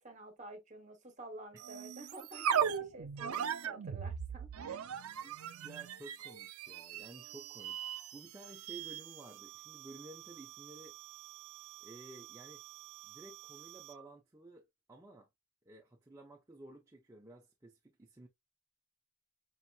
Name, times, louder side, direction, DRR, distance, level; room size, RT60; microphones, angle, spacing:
voice 1, 0.0-4.8, right 1 dB, 35° right, 1.1 m, -51 dB
sound 1, 1.6-14.1, right 8 dB, 80° right, 0.4 m, -40 dB
voice 2, 5.2-11.0 11.8-12.6 13.0-15.3 15.7-18.3, right 2 dB, 15° right, 0.5 m, -54 dB
5.4 x 2.9 x 2.3 m
head